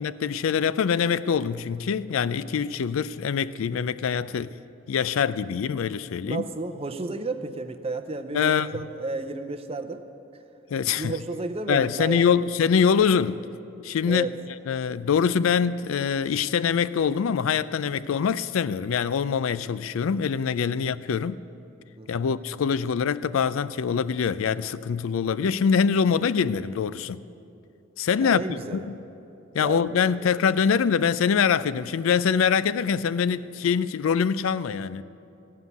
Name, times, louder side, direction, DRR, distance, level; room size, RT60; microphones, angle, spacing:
voice 1, 0.0-4.5 4.9-6.4 8.3-8.7 10.7-11.1 11.7-13.4 13.8-14.3 14.7-21.4 22.1-27.2 28.0-28.4 28.7-28.9 29.5-35.0, left 6 dB, 80° left, 0.4 m, -24 dB
voice 2, 6.2-10.1 11.0-12.3 14.0-14.3 22.0-22.3 28.2-28.9 29.6-30.3, right 3 dB, 30° right, 0.6 m, -32 dB
16.5 x 5.6 x 9.3 m
head